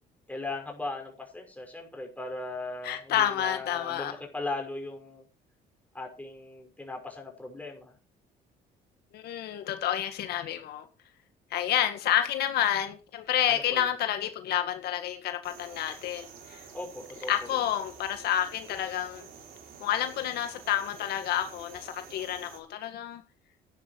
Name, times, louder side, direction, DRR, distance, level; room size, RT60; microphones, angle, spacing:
voice 1, 0.3-5.2 5.9-7.9 13.5-13.9 16.7-17.5, left 2 dB, 10° left, 5.9 m, -38 dB
voice 2, 2.8-4.1 9.1-10.9 11.5-16.7 17.3-19.3 19.8-23.2, left 11 dB, 75° left, 1.8 m, -29 dB
sound 1, 15.4-22.6, right 6 dB, 65° right, 5.3 m, -49 dB
12.0 x 10.5 x 4.7 m
cardioid pair, 110°, 17 cm